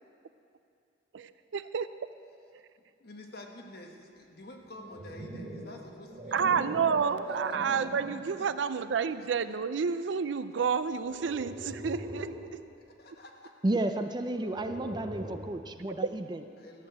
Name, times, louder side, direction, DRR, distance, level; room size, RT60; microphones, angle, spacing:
voice 1, 1.1-1.9 6.3-12.3, right 6 dB, 75° right, 13 dB, 0.4 m, -30 dB
voice 2, 3.0-6.8 7.2-7.9 12.9-13.5 16.6-16.9, left 1 dB, 55° left, 2 dB, 1.3 m, -48 dB
sound 1, 4.6-8.3 8.9-9.2 11.0-12.5 14.2-15.6, right 1 dB, 40° right, 1.5 m, -41 dB
voice 3, 13.6-16.4, right 1 dB, 25° right, 8 dB, 0.4 m, -32 dB
14.0 x 6.7 x 8.0 m, 2.4 s
head